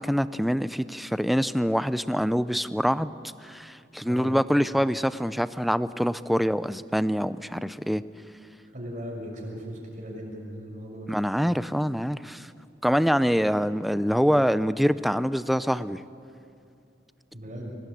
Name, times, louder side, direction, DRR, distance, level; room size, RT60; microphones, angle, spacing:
voice 1, 0.0-3.1 3.4-8.0 11.1-12.5 12.8-16.0, equal, ahead, 14 dB, 0.5 m, -25 dB
voice 2, 4.0-4.4 8.7-11.2 17.3-17.7, equal, 45° right, -1 dB, 6.5 m, -38 dB
24.0 x 19.0 x 8.6 m, 2.5 s
head